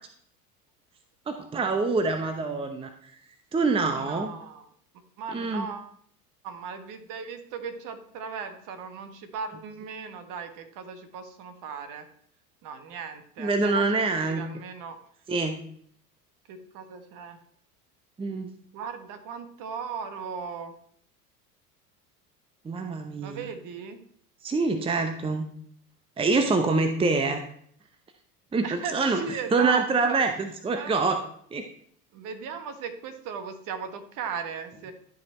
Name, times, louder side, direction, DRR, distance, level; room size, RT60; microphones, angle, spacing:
voice 1, 1.3-3.1 3.5-4.3 5.3-5.7 13.4-14.5 15.3-15.6 18.2-18.5 22.6-23.5 24.4-25.5 26.2-27.4 28.5-29.2 29.5-31.2 31.5-31.7, right 3 dB, 10° right, 7 dB, 0.8 m, -25 dB
voice 2, 4.0-4.7 5.2-5.9 6.4-12.1 12.6-13.8 14.2-15.0 16.5-17.4 18.7-20.7 23.2-24.0 28.6-30.2 30.7-30.9 32.1-34.9, right 6 dB, 45° right, 9 dB, 1.5 m, -37 dB
12.0 x 5.2 x 4.3 m, 0.63 s
figure-of-eight pair, 75°, 46 cm